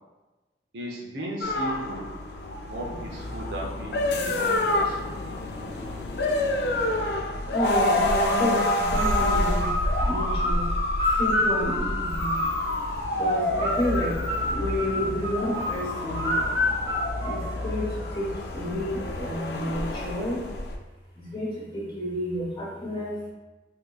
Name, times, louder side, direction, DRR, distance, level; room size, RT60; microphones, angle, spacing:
voice 1, 0.7-2.1 2.6-5.1, right 1 dB, 75° right, -2 dB, 0.7 m, -36 dB
sound 1, 1.4-20.8, left 1 dB, 70° left, 0.4 m, -28 dB
voice 2, 5.3-6.2 7.4-9.7 10.0-10.7 11.1-12.3 13.2-14.1 14.4-16.3 17.2-20.4 21.2-23.2, equal, 25° left, -6 dB, 1.0 m, -31 dB
sound 2, 8.2-12.9 13.6-18.0, left 1 dB, 15° right, 0.9 m, -29 dB
3.6 x 2.7 x 2.3 m, 1.1 s
head